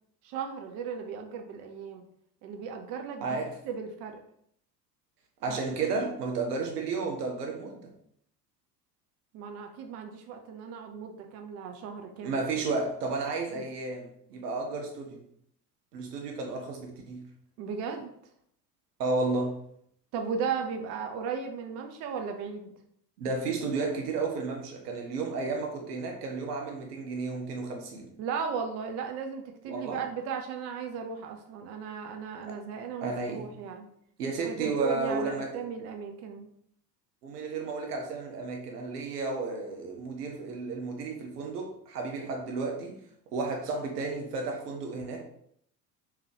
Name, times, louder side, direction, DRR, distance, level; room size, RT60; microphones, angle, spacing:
voice 1, 0.2-2.0 2.4-4.2 5.5-6.1 9.3-12.4 13.5-13.6 17.6-18.1 20.1-22.7 28.2-33.9 34.4-36.5, right 6 dB, 35° right, 0.5 m, -36 dB
voice 2, 3.2-3.6 5.4-7.9 12.2-15.2 15.9-17.3 19.0-19.6 23.2-28.1 29.7-30.0 33.0-33.5 34.2-35.6 37.2-43.0 43.3-45.3, right 3 dB, 65° right, 0.8 m, -32 dB
3.5 x 2.9 x 3.2 m
figure-of-eight pair, 70°, 50 cm